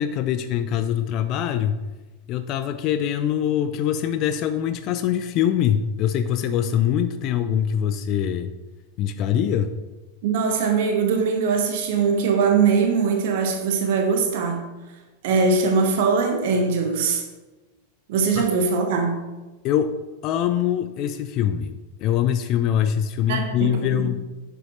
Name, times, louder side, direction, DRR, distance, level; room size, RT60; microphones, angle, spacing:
voice 1, 0.0-1.8 2.3-8.5 9.0-9.7 18.4-18.5 19.6-19.9 20.2-24.2, left 10 dB, 40° left, 10 dB, 0.4 m, -23 dB
voice 2, 10.2-14.6 15.2-17.2 18.1-19.2 23.3-24.1, right 5 dB, 50° right, 4 dB, 1.2 m, -21 dB
10.5 x 6.8 x 3.1 m, 1.2 s
figure-of-eight pair, 90°, 0 cm